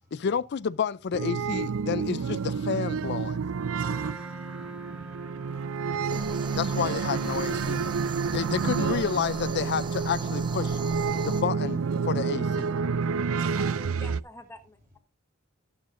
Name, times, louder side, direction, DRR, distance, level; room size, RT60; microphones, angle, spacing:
voice 1, 0.1-3.4 6.6-10.8 11.3-12.7, left 7 dB, 55° left, 0.4 m, -30 dB
sound 1, 1.1-14.2, right 5 dB, 75° right, 0.5 m, -29 dB
voice 2, 3.6-6.5 11.1-11.7, left 1 dB, 40° right, 4.2 m, -58 dB
Wind instrument woodwind instrument, 3.8-10.9, equal, 5° right, 0.5 m, -46 dB
sound 2, 6.1-11.4, right 2 dB, 20° right, 0.9 m, -40 dB
voice 3, 13.5-15.0, left 1 dB, 15° left, 1.1 m, -47 dB
18.0 x 7.3 x 2.5 m
head